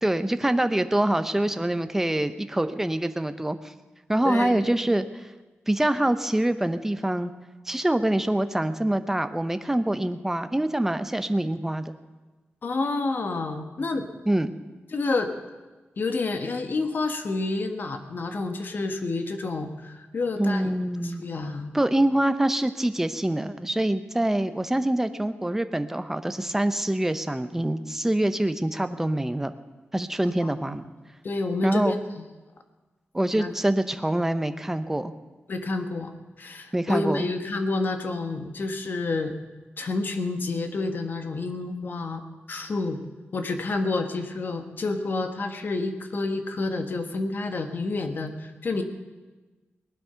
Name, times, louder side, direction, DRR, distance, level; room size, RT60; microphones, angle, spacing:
voice 1, 0.0-3.7 4.1-5.3 5.7-7.3 7.7-12.0 14.3-14.5 20.4-21.2 21.7-29.5 29.9-30.8 31.6-32.0 33.1-35.1 36.7-37.3, right 1 dB, 10° right, 10 dB, 0.7 m, -25 dB
voice 2, 4.2-4.7 12.6-14.1 14.9-15.3 16.0-21.8 30.4-30.8 31.2-32.0 33.3-33.5 35.5-36.1 36.4-39.3 39.8-42.2 42.5-43.0 43.3-48.8, left 3 dB, 50° left, 6 dB, 1.4 m, -29 dB
18.5 x 12.0 x 5.7 m, 1.2 s
wide cardioid pair, 140°, 4 cm